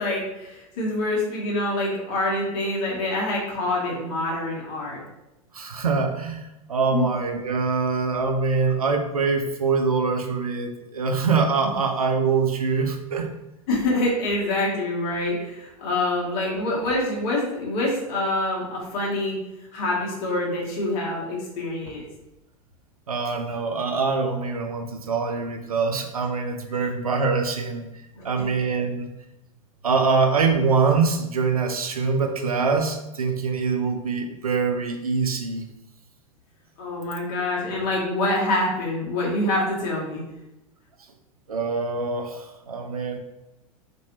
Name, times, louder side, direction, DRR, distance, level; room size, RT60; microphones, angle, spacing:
voice 1, 0.0-5.0 6.9-7.1 11.6-11.7 13.7-19.4 19.7-22.0 28.1-28.4 36.8-40.2, left 2 dB, 45° left, -4 dB, 1.1 m, -26 dB
voice 2, 5.5-13.3 23.1-27.9 28.2-29.1 29.8-35.7 41.5-43.2, right 4 dB, 80° right, 5 dB, 0.4 m, -24 dB
2.6 x 2.6 x 2.8 m, 0.93 s
figure-of-eight pair, 95°, 18 cm